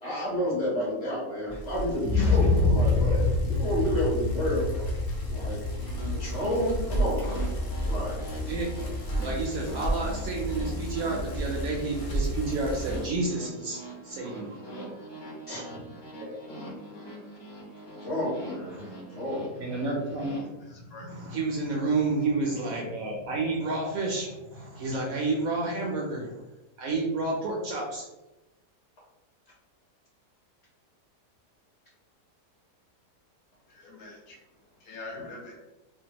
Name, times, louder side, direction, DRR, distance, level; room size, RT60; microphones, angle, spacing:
voice 1, 0.0-4.9 5.3-5.6 6.2-7.4 7.8-8.2 15.5-15.6 18.0-19.4, equal, 40° left, -7 dB, 1.3 m, -30 dB
Bicycle, 1.5-13.2, right 1 dB, 90° left, 0.5 m, -33 dB
sound 1, 2.0-9.9 10.3-10.4, left 3 dB, 90° right, 0.5 m, -28 dB
sound 2, 5.6-20.4, right 1 dB, 20° left, 0.7 m, -43 dB
voice 2, 9.2-14.7 16.2-16.4 18.7-18.8 19.6-26.4 26.8-28.1, right 3 dB, 70° right, -2 dB, 0.9 m, -30 dB
voice 3, 20.6-21.4 33.7-34.4 34.8-35.5, left 3 dB, 75° left, -2 dB, 1.2 m, -44 dB
3.4 x 2.0 x 2.8 m, 1.0 s
omnidirectional pair, 1.8 m